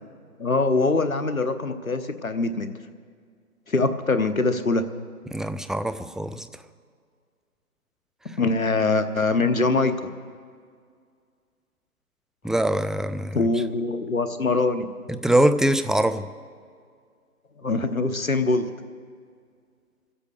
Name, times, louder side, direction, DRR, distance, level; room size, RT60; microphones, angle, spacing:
voice 1, 0.4-2.7 3.7-4.9 8.4-10.1 13.3-14.9 17.6-18.7, left 3 dB, 65° left, 9 dB, 1.0 m, -23 dB
voice 2, 5.3-6.5 12.4-13.4 15.2-16.2, right 1 dB, ahead, 11 dB, 0.3 m, -23 dB
24.5 x 8.2 x 6.4 m, 2.1 s
figure-of-eight pair, 165°, 45 cm